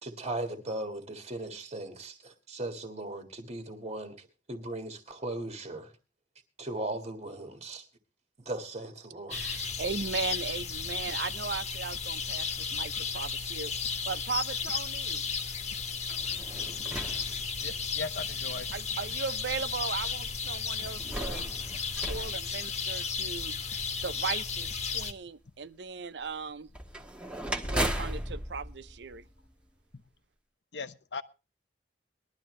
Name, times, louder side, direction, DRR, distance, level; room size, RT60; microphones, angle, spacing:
voice 1, 0.0-5.9 6.6-7.8 8.5-9.4, right 2 dB, 40° right, 1.8 m, -38 dB
sound 1, 9.3-25.1, left 5 dB, 40° left, 1.4 m, -34 dB
voice 2, 9.3-13.7 14.1-15.2 18.7-21.5 22.1-23.5 24.0-26.7 27.6-29.3, right 5 dB, 75° right, 0.7 m, -37 dB
sound 2, 16.0-18.0 18.8-18.9 20.7-23.3 26.7-29.8, right 1 dB, 5° right, 1.3 m, -37 dB
voice 3, 17.6-19.0 27.5-27.6 29.9-30.0 30.7-31.2, left 4 dB, 80° left, 0.8 m, -39 dB
21.0 x 12.5 x 3.2 m
head